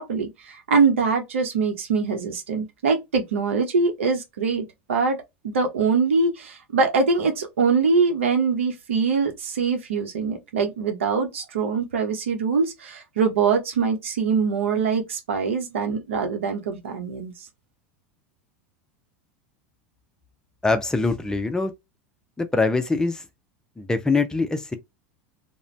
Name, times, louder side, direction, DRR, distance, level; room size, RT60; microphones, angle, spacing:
voice 1, 0.0-5.2 5.4-17.3, right 5 dB, 85° right, 0.8 m, -23 dB
voice 2, 20.6-21.7 22.4-23.3 23.8-24.8, left 3 dB, 10° left, 0.5 m, -23 dB
2.4 x 2.1 x 3.2 m
hypercardioid pair, 95°, 7 cm